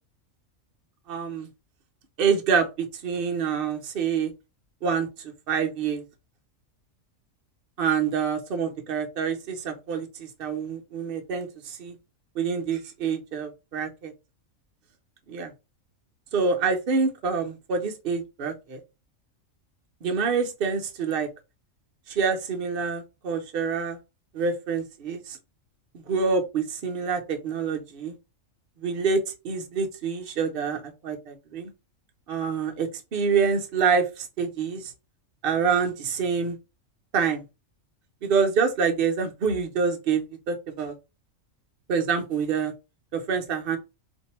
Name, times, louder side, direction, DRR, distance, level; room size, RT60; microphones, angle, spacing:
voice 1, 1.1-1.5 2.2-4.3 4.8-6.0 7.8-12.0 12.4-14.1 15.3-15.5 16.3-18.8 20.0-21.3 22.1-24.0 24.3-25.4 25.9-28.1 28.8-29.2 29.4-31.7 32.3-34.9 35.4-36.6 37.1-37.4 38.2-40.9 41.9-42.7 43.1-43.8, right 5 dB, 50° right, 4 dB, 0.9 m, -26 dB
2.6 x 2.6 x 4.2 m, 0.27 s
omnidirectional pair, 1.4 m